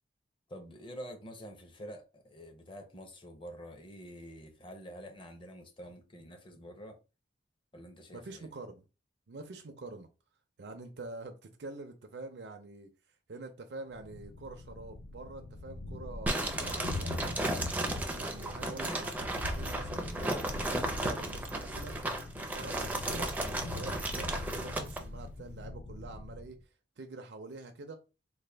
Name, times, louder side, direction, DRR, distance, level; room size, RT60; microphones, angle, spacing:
voice 1, 0.5-7.0 7.7-8.5, equal, 30° left, 0.7 m, -47 dB
voice 2, 8.1-8.8 9.3-10.1 10.6-12.9 13.3-17.7 18.1-23.3 23.7-26.6 27.0-28.0, right 3 dB, 70° right, 0.5 m, -46 dB
Thunder, 14.0-26.6, left 2 dB, 80° left, 0.5 m, -42 dB
sound 1, 16.3-25.0, right 1 dB, 10° right, 0.4 m, -35 dB
4.1 x 2.2 x 3.3 m
head